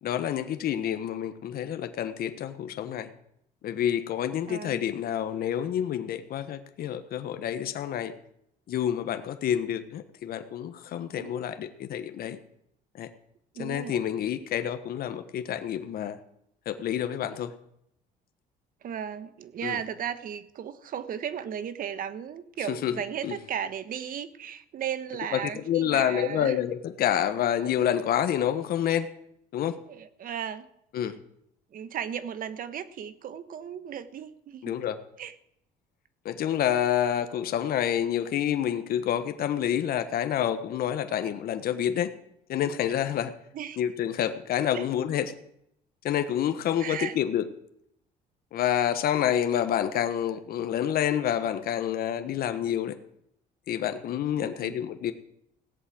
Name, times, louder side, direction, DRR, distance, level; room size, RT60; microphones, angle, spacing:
voice 1, 0.0-3.1 3.6-8.1 8.7-12.4 12.9-13.1 13.6-16.2 16.6-17.5 19.6-19.8 22.7-22.9 23.2-23.4 25.3-25.4 25.7-29.1 29.5-29.8 30.9-31.2 34.6-35.0 36.2-42.1 42.5-43.3 43.8-45.3 46.0-47.4 48.5-53.0 53.7-55.1, left 10 dB, 60° left, 9 dB, 1.3 m, -28 dB
voice 2, 4.5-4.8 11.2-11.3 13.5-14.0 18.8-26.6 29.9-30.7 31.0-31.1 31.7-34.7 35.2-35.3 43.5-43.8 44.7-44.9 46.8-47.2 54.4-54.7, right 9 dB, 55° right, 13 dB, 1.4 m, -35 dB
17.0 x 8.3 x 7.7 m, 0.74 s
cardioid pair, 110°, 17 cm